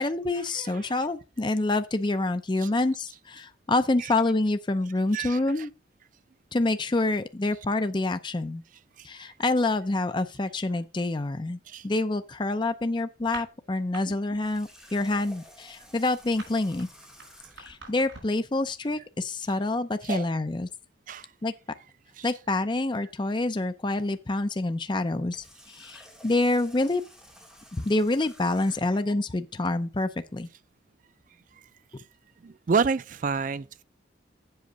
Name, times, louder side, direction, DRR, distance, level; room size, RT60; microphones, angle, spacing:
voice 1, 0.0-5.7 6.5-8.6 9.0-11.6 11.8-16.9 17.6-20.7 21.4-21.5 22.2-27.0 27.7-30.5, left 2 dB, 25° left, 0.5 m, -27 dB
voice 2, 0.5-0.9 2.6-2.7 4.0-4.1 5.1-5.7 9.0-9.2 11.7-11.9 14.1-14.2 20.0-20.3 21.1-21.3 22.2-22.3 32.4-33.8, right 5 dB, 45° right, 0.4 m, -30 dB
sound 1, 13.2-14.0 14.3-14.6 14.9-18.5, right 3 dB, 75° right, 5.0 m, -46 dB
Water tap faucet, 14.4-17.8 25.2-29.0, equal, 5° right, 2.0 m, -52 dB
8.0 x 6.2 x 5.0 m
head